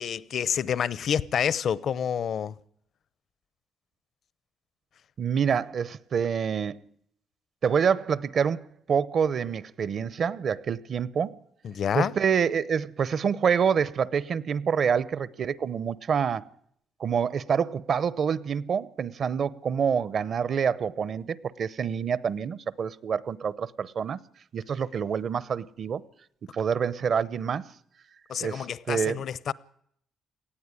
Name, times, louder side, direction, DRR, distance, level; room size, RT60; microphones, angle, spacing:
voice 1, 0.0-2.6 11.6-12.1 28.3-29.5, left 8 dB, 60° left, 0.7 m, -28 dB
voice 2, 5.2-6.8 7.6-11.4 11.9-16.5 17.0-24.2 24.5-26.0 26.5-27.7 28.4-29.2, right 7 dB, 55° right, 0.8 m, -27 dB
18.5 x 15.0 x 9.9 m
cardioid pair, 90°, 0 cm